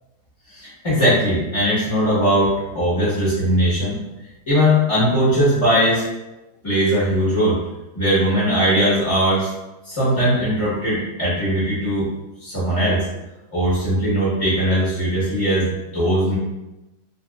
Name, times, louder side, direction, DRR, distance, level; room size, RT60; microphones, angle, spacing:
voice 1, 0.5-3.9 4.5-6.0 6.6-7.6 7.9-9.5 9.8-12.1 12.4-13.0 13.5-16.3, equal, 20° left, -10 dB, 1.0 m, -19 dB
4.2 x 2.5 x 2.4 m, 0.99 s
omnidirectional pair, 1.8 m